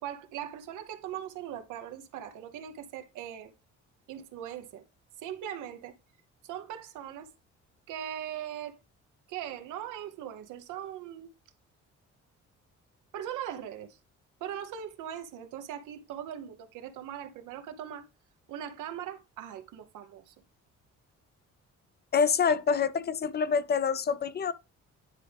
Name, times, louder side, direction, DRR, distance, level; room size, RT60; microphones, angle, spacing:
voice 1, 0.0-3.5 4.1-4.9 5.2-5.9 6.4-7.3 7.9-8.8 9.3-11.3 13.1-14.0 14.4-18.1 18.5-20.3, right 10 dB, 90° right, 0.9 m, -40 dB
voice 2, 22.1-24.5, left 6 dB, 35° left, 0.4 m, -26 dB
9.9 x 3.6 x 3.3 m
cardioid pair, 90°, 30 cm